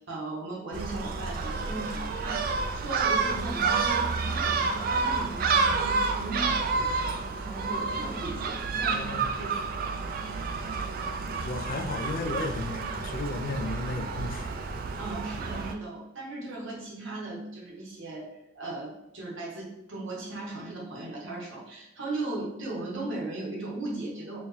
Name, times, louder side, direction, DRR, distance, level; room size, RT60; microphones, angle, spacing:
voice 1, 0.1-9.9 15.0-18.3 18.5-24.4, right 2 dB, 80° right, -3 dB, 1.2 m, -37 dB
Gull seagull, 0.7-15.7, right 4 dB, 50° right, 0.3 m, -29 dB
voice 2, 8.7-9.3 11.4-14.5, left 2 dB, 45° left, 5 dB, 0.4 m, -34 dB
4.2 x 2.3 x 3.2 m, 0.87 s
head